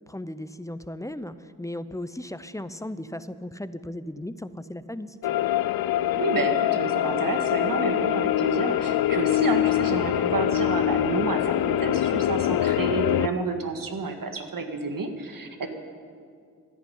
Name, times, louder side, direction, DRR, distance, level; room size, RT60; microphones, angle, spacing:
voice 1, 0.1-5.5, left 1 dB, 10° left, 13 dB, 0.7 m, -36 dB
sound 1, 5.2-13.3, left 12 dB, 60° left, 0.5 m, -24 dB
voice 2, 6.2-15.7, right 4 dB, 55° right, 6 dB, 1.8 m, -30 dB
13.0 x 11.0 x 9.3 m, 2.2 s
cardioid pair, 50°, 40 cm